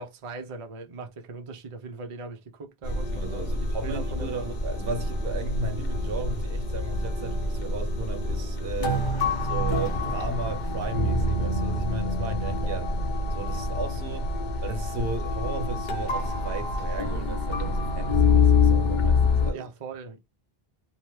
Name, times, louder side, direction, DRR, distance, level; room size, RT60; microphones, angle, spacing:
voice 1, 0.0-4.5 19.5-20.2, right 4 dB, 40° right, 0.5 m, -40 dB
sound 1, 2.8-19.5, left 3 dB, 55° left, 0.7 m, -26 dB
voice 2, 3.1-9.1 9.4-13.0 13.3-19.7, right 3 dB, 75° right, 1.0 m, -35 dB
2.9 x 2.1 x 3.1 m
omnidirectional pair, 1.0 m